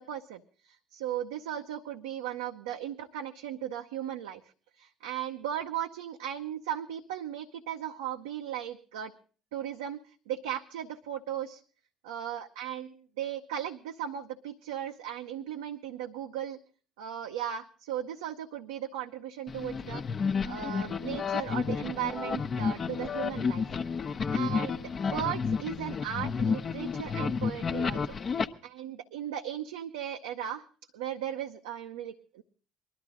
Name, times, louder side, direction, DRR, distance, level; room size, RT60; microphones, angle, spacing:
voice 1, 0.0-4.4 4.8-9.1 9.5-10.0 10.3-11.6 12.0-16.6 17.0-20.0 20.4-23.8 24.3-28.2 28.6-30.6 30.9-32.4, right 10 dB, 80° right, 4 dB, 0.7 m, -37 dB
sound 1, 19.5-28.5, left 5 dB, 40° left, 0.9 m, -31 dB
21.0 x 12.5 x 3.7 m, 0.41 s
hypercardioid pair, 60°, 0 cm